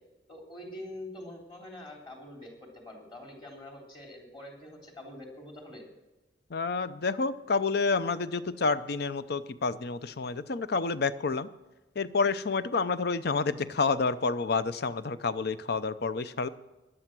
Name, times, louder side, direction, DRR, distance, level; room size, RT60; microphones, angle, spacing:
voice 1, 0.3-5.8, left 1 dB, 25° left, 0 dB, 3.3 m, -45 dB
voice 2, 6.5-11.5 12.0-16.5, left 4 dB, 60° left, 14 dB, 0.6 m, -29 dB
15.5 x 11.0 x 6.0 m, 1.1 s
head